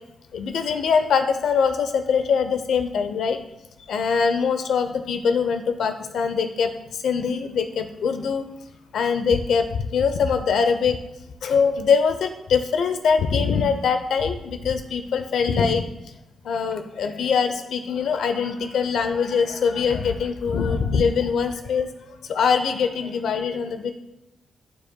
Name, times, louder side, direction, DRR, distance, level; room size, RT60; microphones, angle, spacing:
voice 1, 0.3-3.4 3.9-6.7 7.0-8.4 8.9-9.7 9.9-11.0 11.4-15.8 16.4-21.9 22.3-23.9, left 6 dB, 80° left, 8 dB, 0.7 m, -22 dB
12.0 x 4.9 x 2.3 m, 0.92 s
wide cardioid pair, 140°, 0 cm